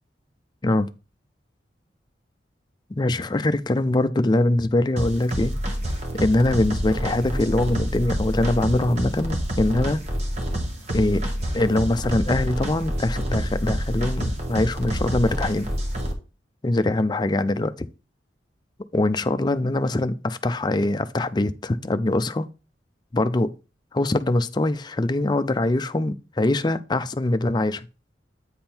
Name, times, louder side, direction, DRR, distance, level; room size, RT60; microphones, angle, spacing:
voice 1, 2.9-5.5 6.1-10.0 10.9-11.2 11.5-15.7 16.6-17.9 18.9-22.5 23.1-23.5 23.9-27.9, left 2 dB, 25° left, 0.4 m, -23 dB
sound 1, 5.0-16.1, equal, 40° right, 1.3 m, -27 dB
8.7 x 3.6 x 4.4 m
head